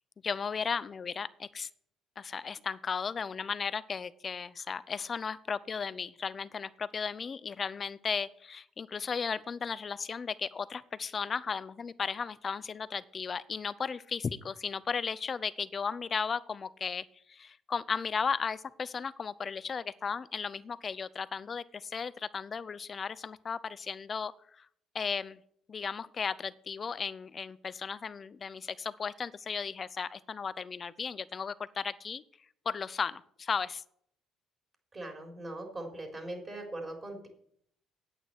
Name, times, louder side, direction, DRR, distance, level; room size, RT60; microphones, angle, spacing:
voice 1, 0.2-1.7 2.2-24.7 24.9-25.4 25.7-32.2 32.7-33.8, left 6 dB, 30° left, 17 dB, 0.6 m, -35 dB
voice 2, 34.9-37.3, right 1 dB, 25° right, 2 dB, 3.9 m, -40 dB
9.2 x 8.7 x 7.9 m, 0.67 s
cardioid pair, 120°, 0 cm